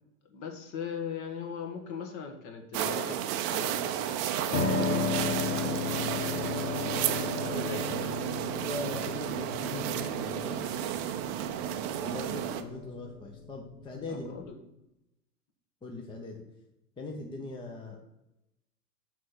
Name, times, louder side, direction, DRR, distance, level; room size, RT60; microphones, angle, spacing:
voice 1, 0.2-3.2 3.5-8.2 12.0-12.2 14.1-14.6, left 6 dB, 40° left, 5 dB, 1.5 m, -41 dB
sound 1, 2.7-12.6, right 11 dB, 35° right, 0.6 m, -32 dB
Piano, 4.5-14.5, left 4 dB, 70° left, 1.7 m, -35 dB
voice 2, 8.6-10.8 12.0-14.3 15.8-16.4 17.0-18.0, left 3 dB, 10° left, 1 dB, 0.7 m, -40 dB
6.1 x 4.2 x 6.0 m, 0.88 s
hypercardioid pair, 105°, 49 cm